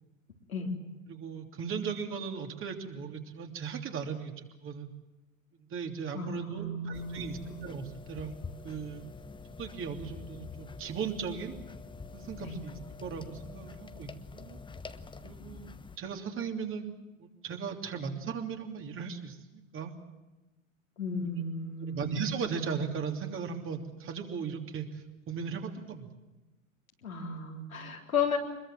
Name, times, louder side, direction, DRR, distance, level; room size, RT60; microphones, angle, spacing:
voice 1, 1.1-4.9 5.7-8.4 8.6-9.0 9.5-11.5 12.1-14.6 15.2-15.7 16.0-16.9 17.2-19.9 21.9-26.1, right 6 dB, 30° right, 3 dB, 3.0 m, -37 dB
voice 2, 6.1-7.6 12.4-12.6 21.0-22.2 27.0-28.4, left 4 dB, 85° left, 0 dB, 3.9 m, -34 dB
sound 1, 6.9-16.0, left 4 dB, 10° left, 1.2 m, -46 dB
25.0 x 22.0 x 7.6 m, 1.1 s
figure-of-eight pair, 90°, 41 cm